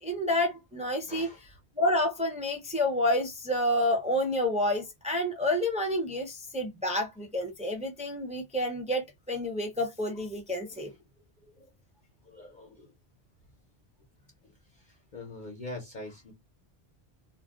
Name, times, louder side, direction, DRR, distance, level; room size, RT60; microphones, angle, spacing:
voice 1, 0.0-1.3 1.8-10.9, left 1 dB, 10° right, 0.3 m, -29 dB
voice 2, 1.1-1.4 10.6-10.8 11.6-11.7 12.3-12.9 15.1-16.3, left 2 dB, 50° left, 0.8 m, -43 dB
2.4 x 2.2 x 3.6 m
omnidirectional pair, 1.1 m